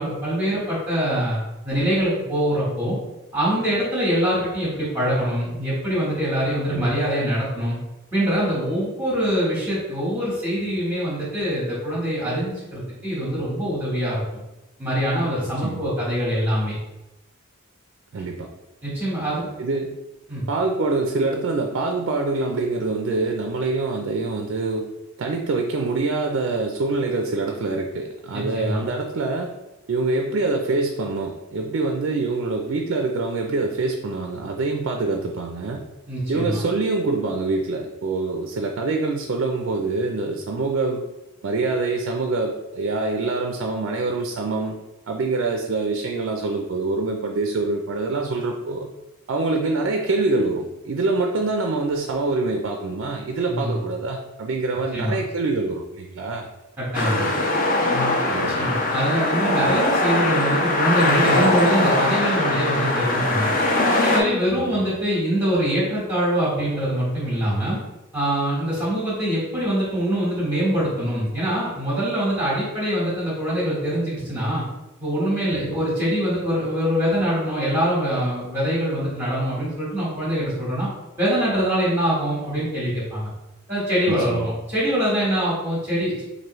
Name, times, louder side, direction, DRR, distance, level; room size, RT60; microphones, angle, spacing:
voice 1, 0.0-1.4 1.6-3.0 3.3-7.8 8.1-14.2 14.8-16.8 18.8-19.5 20.3-20.4 28.3-28.8 36.1-36.6 53.5-53.8 54.9-55.2 56.8-57.3 58.5-63.5 64.0-67.8 68.1-74.6 75.0-80.9 81.2-83.3 83.7-86.2, equal, 10° right, -8 dB, 1.1 m, -24 dB
voice 2, 18.1-18.5 19.6-19.9 20.5-24.9 25.2-29.5 29.9-35.9 36.3-41.0 41.4-44.8 45.1-48.9 49.3-56.5 58.3-58.6 64.6-64.7 75.5-75.8 84.1-84.5, right 3 dB, 60° right, 3 dB, 0.4 m, -25 dB
sound 1, 56.9-64.2, left 2 dB, 40° left, 0.5 m, -21 dB
4.6 x 2.6 x 3.0 m, 1.0 s
head